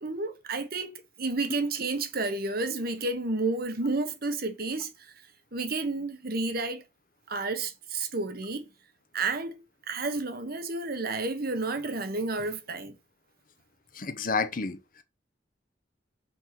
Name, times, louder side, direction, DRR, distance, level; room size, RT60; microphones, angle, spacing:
voice 1, 0.0-4.9 5.5-6.8 7.3-8.7 9.1-9.5 9.9-13.0, right 3 dB, 55° right, 1.2 m, -31 dB
voice 2, 13.9-15.0, left 4 dB, 50° left, 0.9 m, -30 dB
5.4 x 4.6 x 5.9 m
head